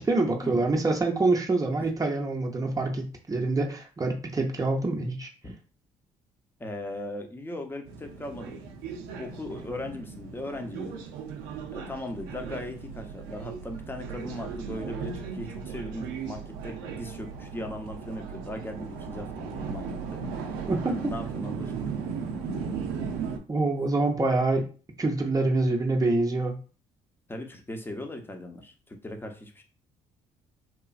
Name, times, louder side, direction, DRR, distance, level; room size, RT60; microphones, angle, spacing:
voice 1, 0.0-5.3 20.7-21.0 23.5-24.7 25.0-26.6, right 2 dB, 25° right, 1 dB, 0.7 m, -26 dB
voice 2, 6.6-8.6 9.2-11.0 11.7-20.2 20.9-21.8 27.3-29.6, left 1 dB, 15° left, 4 dB, 0.7 m, -38 dB
sound 1, 7.9-23.4, right 6 dB, 90° right, 0.4 m, -37 dB
3.0 x 2.4 x 2.4 m, 0.36 s
supercardioid pair, 65°, 15 cm